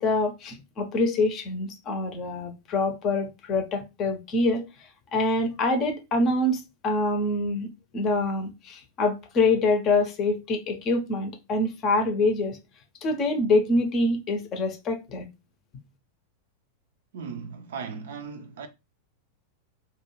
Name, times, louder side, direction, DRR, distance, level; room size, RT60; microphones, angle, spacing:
voice 1, 0.0-4.6 5.1-7.7 7.9-12.6 13.0-15.3, left 2 dB, 35° left, 0.6 m, -25 dB
voice 2, 17.1-18.7, right 5 dB, 60° right, 0.4 m, -37 dB
2.2 x 2.2 x 3.0 m
figure-of-eight pair, 90°, 0 cm